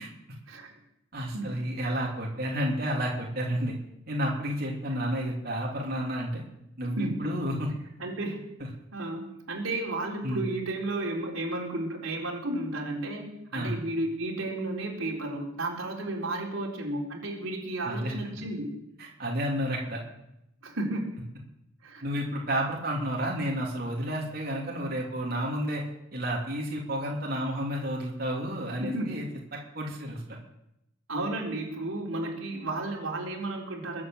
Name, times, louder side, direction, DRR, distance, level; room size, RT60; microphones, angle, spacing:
voice 1, 1.1-3.8 4.1-6.4 6.8-7.7 10.2-10.4 13.5-13.8 17.8-18.1 19.0-20.0 22.0-25.8 26.1-29.2 29.7-30.4, equal, 50° right, -3 dB, 3.4 m, -31 dB
voice 2, 6.9-7.3 8.0-8.4 8.9-18.7 20.6-21.2 21.8-22.0 28.8-29.1 31.1-34.0, right 2 dB, 90° right, -1 dB, 4.1 m, -33 dB
22.0 x 8.6 x 7.7 m, 0.82 s
head